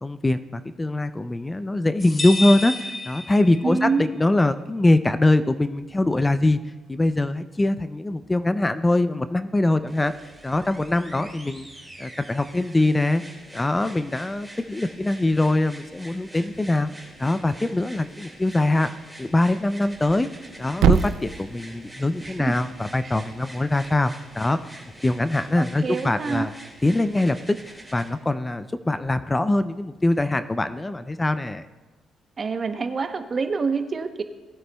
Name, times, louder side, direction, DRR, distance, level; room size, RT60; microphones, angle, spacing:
voice 1, 0.0-6.6 6.9-10.1 10.4-11.7 12.0-13.2 13.5-16.9 17.2-18.9 19.2-20.3 20.6-24.6 25.0-26.5 26.8-27.4 27.7-31.7, left 2 dB, 15° left, 11 dB, 0.4 m, -23 dB
sound 1, 2.0-3.9, left 2 dB, 30° left, 2.0 m, -30 dB
voice 2, 3.6-4.0 22.2-22.6 23.0-23.1 25.6-26.5 32.4-34.2, right 4 dB, 40° right, 8 dB, 0.8 m, -26 dB
sound 2, 9.9-28.1 29.1-29.2, right 1 dB, 5° right, 3.9 m, -45 dB
Thump thud, 19.9-24.0, right 9 dB, 85° right, 0.3 m, -28 dB
18.5 x 9.3 x 2.3 m, 1.2 s
cardioid pair, 90°, 0 cm